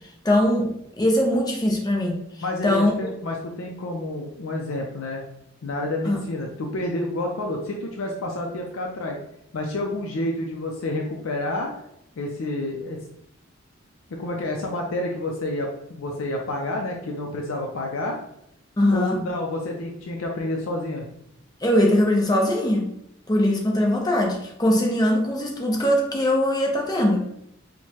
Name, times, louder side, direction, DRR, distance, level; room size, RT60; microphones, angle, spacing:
voice 1, 0.2-2.2 2.6-2.9 6.1-6.2 18.8-19.2 21.6-22.9 23.3-27.2, left 1 dB, 20° left, 1 dB, 0.5 m, -21 dB
voice 2, 2.4-5.2 5.6-9.2 9.5-11.7 12.2-13.0 14.1-18.2 18.9-21.1, left 1 dB, 75° left, 0 dB, 0.5 m, -29 dB
4.6 x 2.2 x 2.8 m, 0.76 s
head